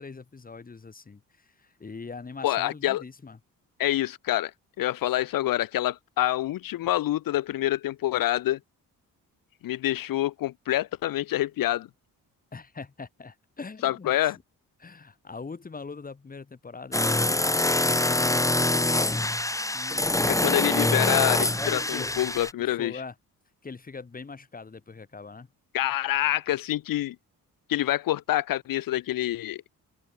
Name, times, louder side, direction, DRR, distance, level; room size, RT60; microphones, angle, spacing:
voice 1, 0.0-3.4 12.5-14.3 14.8-19.4 19.7-20.4 22.5-23.1 23.6-25.5, left 4 dB, 25° left, 3.7 m, -42 dB
voice 2, 2.4-3.0 3.8-4.5 4.8-8.6 9.6-11.9 13.8-14.4 20.3-22.9 25.7-27.1 27.7-29.6, left 14 dB, 75° left, 1.5 m, -26 dB
sound 1, 16.9-22.5, left 2 dB, 10° left, 2.5 m, -24 dB
open air
cardioid pair, 115°, 34 cm